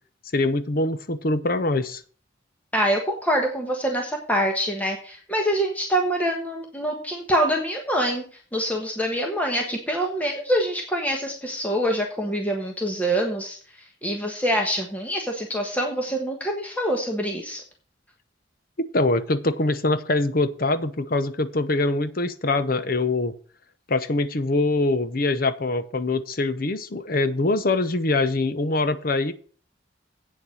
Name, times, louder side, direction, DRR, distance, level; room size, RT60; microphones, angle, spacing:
voice 1, 0.3-2.0 18.9-23.3 23.9-29.3, left 2 dB, 50° left, 12 dB, 0.9 m, -23 dB
voice 2, 2.7-8.2 8.5-13.6 14.0-17.6, equal, 10° left, 1 dB, 1.3 m, -25 dB
8.6 x 7.1 x 6.3 m, 0.43 s
head